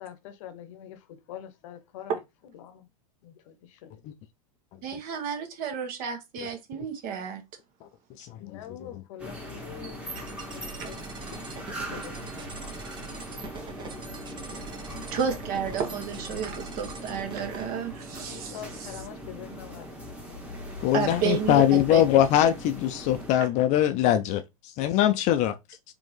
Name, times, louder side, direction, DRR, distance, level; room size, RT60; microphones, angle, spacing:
voice 1, 0.0-2.9 3.2-3.9 8.4-11.0 11.9-12.5 18.3-20.0 20.3-20.6, left 9 dB, 55° left, 0.9 m, -45 dB
voice 2, 4.8-7.4 10.8-10.9 14.5-14.6 15.1-18.9 20.9-22.0, right 7 dB, 45° right, 1.4 m, -31 dB
voice 3, 8.2-8.6 20.8-24.4 24.8-25.5, left 11 dB, 40° left, 0.5 m, -22 dB
sound 1, 9.2-23.3, equal, 5° right, 1.3 m, -40 dB
sound 2, 10.2-17.6, right 4 dB, 25° right, 0.8 m, -43 dB
4.3 x 2.8 x 3.2 m
hypercardioid pair, 95°, 19 cm